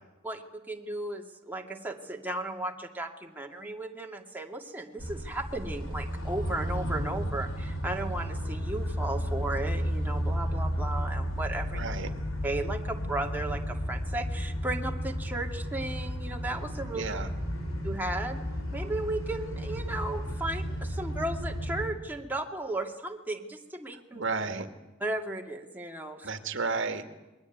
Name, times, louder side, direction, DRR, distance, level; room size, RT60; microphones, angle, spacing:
voice 1, 0.2-11.8 12.4-17.0 17.8-18.4 18.7-24.2 25.0-26.3, right 2 dB, 10° right, 1 dB, 2.4 m, -35 dB
sound 1, 5.0-21.9, equal, 85° left, 5.3 m, -33 dB
voice 2, 11.7-12.1 16.9-17.3 24.1-24.7 26.2-27.0, right 4 dB, 65° right, 7 dB, 2.2 m, -32 dB
27.5 x 22.0 x 9.4 m, 1.1 s
head